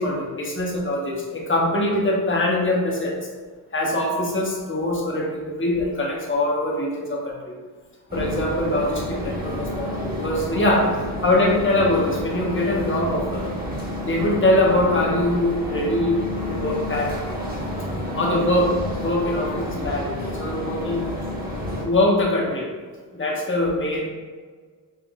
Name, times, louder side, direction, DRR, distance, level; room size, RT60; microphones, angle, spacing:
voice 1, 0.0-3.2 3.7-7.5 8.1-10.9 11.2-13.5 14.0-16.2 16.5-17.4 18.2-21.0 21.8-22.7 23.1-24.1, left 1 dB, 30° left, -1 dB, 1.0 m, -23 dB
sound 1, 8.1-21.8, left 1 dB, 20° right, 1.2 m, -30 dB
5.8 x 2.6 x 2.3 m, 1.5 s
cardioid pair, 75°, 41 cm